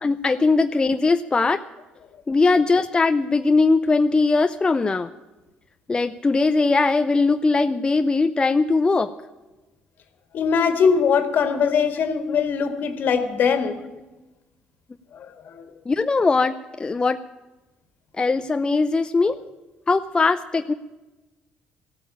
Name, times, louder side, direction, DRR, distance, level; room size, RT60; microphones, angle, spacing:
voice 1, 0.0-1.6 2.3-5.1 5.9-9.1 13.4-13.5 15.9-17.2 18.2-19.4 19.9-20.7, left 3 dB, 25° left, 9 dB, 0.5 m, -20 dB
voice 2, 10.3-13.8 15.1-15.6, left 6 dB, 60° left, 8 dB, 1.8 m, -21 dB
15.0 x 8.5 x 9.9 m, 1.1 s
supercardioid pair, 75°, 4 cm